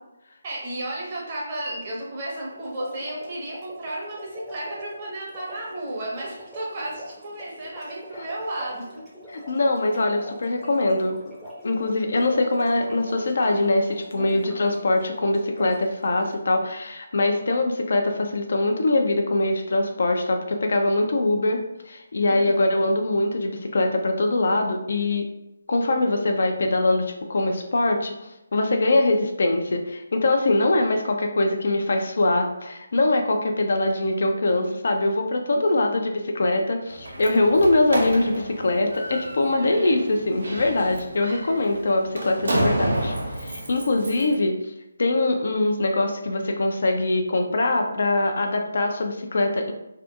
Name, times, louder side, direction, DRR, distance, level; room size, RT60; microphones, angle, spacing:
voice 1, 0.4-9.0 14.2-14.6 22.3-22.6 35.5-35.9, right 1 dB, 35° right, -4 dB, 0.8 m, -33 dB
sound 1, 2.4-16.4, equal, 5° right, 0.6 m, -43 dB
voice 2, 9.3-11.2 11.6-25.3 25.7-44.6 45.0-49.7, left 2 dB, 55° left, 3 dB, 0.3 m, -23 dB
Slam, 36.9-44.3, right 1 dB, 65° right, 0.6 m, -30 dB
2.6 x 2.4 x 2.3 m, 0.90 s
figure-of-eight pair, 150°, 0 cm